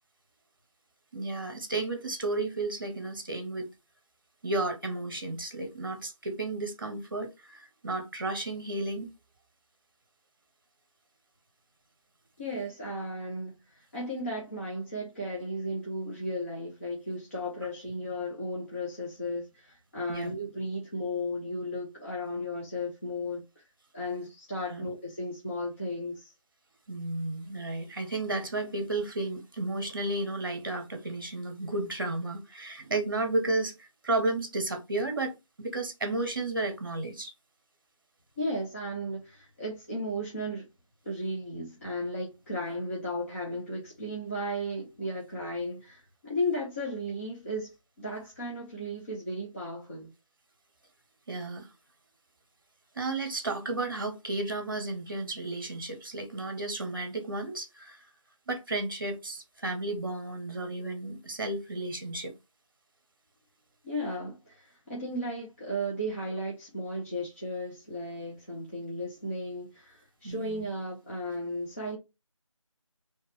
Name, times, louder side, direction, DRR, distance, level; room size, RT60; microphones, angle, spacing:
voice 1, 1.1-3.7 4.4-9.1 20.1-20.3 24.7-24.9 26.9-37.3 51.3-51.7 52.9-58.0 58.5-62.3 70.2-70.6, right 2 dB, 40° right, 1.0 m, -33 dB
voice 2, 12.4-23.6 23.9-26.3 38.4-40.7 41.0-50.1 63.8-72.0, equal, 25° left, 0.9 m, -35 dB
4.2 x 3.2 x 3.4 m
figure-of-eight pair, 165°, 17 cm